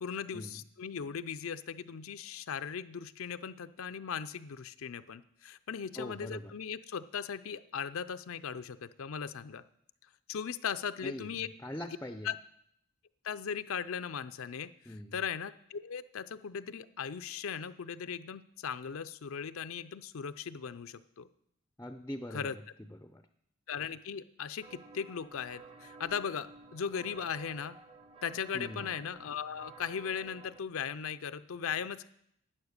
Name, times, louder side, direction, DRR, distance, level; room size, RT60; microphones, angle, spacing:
voice 1, 0.0-9.6 10.3-11.5 12.2-12.3 13.2-14.7 15.1-21.3 22.3-22.6 23.7-27.8 28.2-32.1, left 7 dB, 70° left, 12 dB, 0.5 m, -38 dB
voice 2, 6.0-6.5 11.0-11.3 11.6-12.3 14.9-15.2 21.8-22.5 23.0-23.2 28.5-28.9, left 1 dB, 10° left, 8 dB, 0.4 m, -42 dB
sound 1, 24.6-30.6, right 4 dB, 25° right, 0.7 m, -53 dB
12.0 x 9.0 x 6.6 m, 0.73 s
head